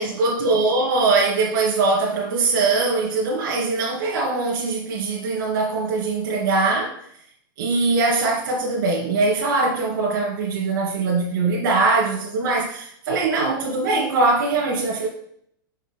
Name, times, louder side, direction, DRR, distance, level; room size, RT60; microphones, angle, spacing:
voice 1, 0.0-7.0 7.6-15.1, right 3 dB, 75° right, -4 dB, 2.4 m, -22 dB
6.4 x 5.6 x 5.4 m, 0.69 s
supercardioid pair, 140°, 12 cm